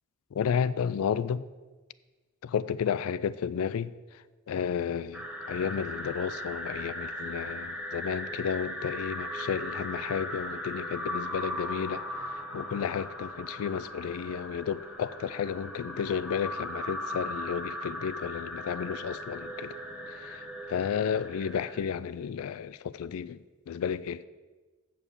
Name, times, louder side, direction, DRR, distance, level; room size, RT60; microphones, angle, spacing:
voice 1, 0.3-1.4 2.4-3.9 4.5-12.0 12.5-19.7 20.3-20.4 20.7-23.4 23.7-24.2, left 7 dB, 75° left, 0.3 m, -32 dB
sound 1, 5.1-21.8, left 1 dB, 5° right, 0.9 m, -38 dB
8.1 x 5.1 x 7.0 m
head